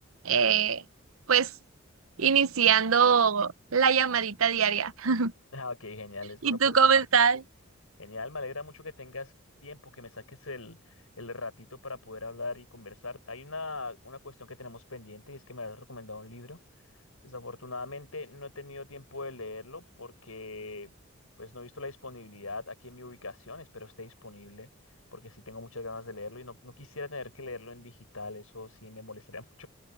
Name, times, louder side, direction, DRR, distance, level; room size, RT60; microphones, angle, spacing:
voice 1, 0.2-0.8 1.3-1.5 2.2-5.3 6.4-7.4, right 6 dB, 80° right, 0.9 m, -23 dB
voice 2, 5.5-7.1 8.0-9.3 9.6-16.6 17.2-20.9 21.4-24.7 25.1-29.7, left 3 dB, 85° left, 7.9 m, -41 dB
open air
head